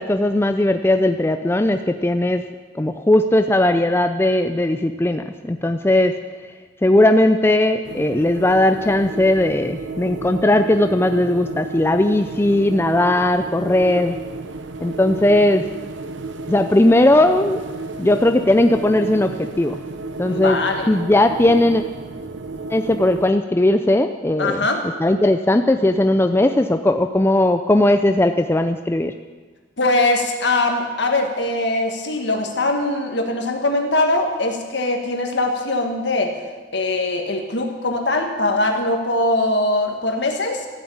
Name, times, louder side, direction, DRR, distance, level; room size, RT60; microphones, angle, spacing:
voice 1, 0.0-2.4 2.8-6.2 6.8-14.2 14.8-15.7 16.5-17.6 18.0-19.8 20.2-20.6 20.9-21.8 22.7-24.6 25.0-29.1, left 1 dB, 15° left, 7 dB, 0.4 m, -17 dB
sound 1, 7.8-23.3, right 3 dB, 75° right, 0.8 m, -33 dB
voice 2, 20.3-20.9 24.4-24.8 29.8-36.3 36.7-40.7, left 2 dB, 65° left, 4 dB, 1.8 m, -21 dB
14.5 x 8.0 x 8.7 m, 1.4 s
head